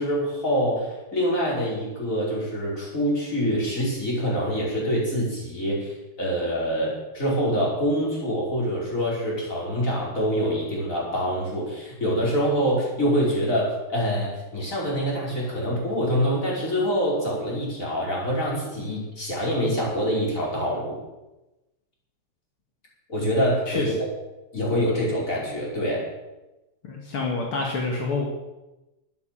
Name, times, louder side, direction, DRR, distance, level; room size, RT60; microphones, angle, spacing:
voice 1, 0.0-21.0 23.1-23.9 24.5-26.1, equal, 35° left, -4 dB, 5.7 m, -25 dB
voice 2, 26.8-28.3, left 3 dB, 75° left, -1 dB, 2.9 m, -27 dB
12.5 x 11.0 x 7.6 m, 1.0 s
omnidirectional pair, 2.4 m